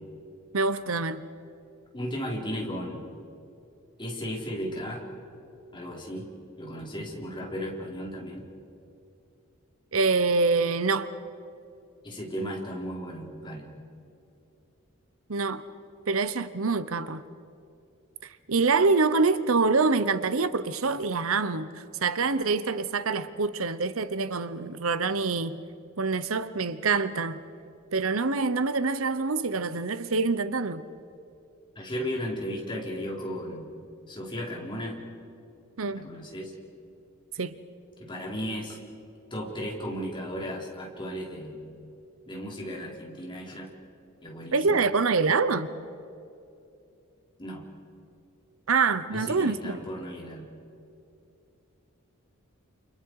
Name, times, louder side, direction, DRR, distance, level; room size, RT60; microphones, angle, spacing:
voice 1, 0.5-1.2 9.9-11.1 15.3-15.6 16.1-17.2 18.5-21.7 22.0-25.6 26.0-27.4 27.9-30.8 35.8-36.0 37.4-37.6 44.5-45.7 48.7-49.8, right 4 dB, 75° right, 0.9 m, -25 dB
voice 2, 1.9-3.1 4.0-5.1 5.7-6.3 6.6-8.5 12.0-13.7 31.8-33.7 34.1-35.0 35.9-36.5 38.0-38.8 39.3-41.6 42.3-43.7 44.2-44.9 47.4-47.7 49.1-50.5, equal, 25° left, 4.2 m, -35 dB
29.5 x 28.5 x 4.8 m
head